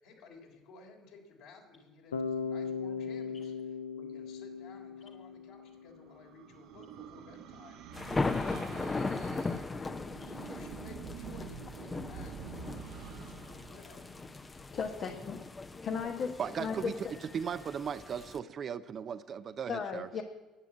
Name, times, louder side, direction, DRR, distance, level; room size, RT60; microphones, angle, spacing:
voice 1, 0.0-14.0 14.7-15.2, left 3 dB, 65° left, 0 dB, 3.6 m, -55 dB
Bass guitar, 2.1-6.1, left 5 dB, 80° left, 0.6 m, -38 dB
sound 1, 5.4-14.9, right 7 dB, 60° right, 1.1 m, -47 dB
sound 2, 7.9-18.4, left 3 dB, 25° left, 0.8 m, -38 dB
voice 2, 14.7-15.4 15.8-16.9 19.7-20.2, left 6 dB, 45° left, 4 dB, 1.1 m, -35 dB
voice 3, 16.4-20.1, right 7 dB, 40° right, 12 dB, 0.6 m, -37 dB
11.0 x 8.6 x 8.4 m, 1.2 s
figure-of-eight pair, 55°, 0 cm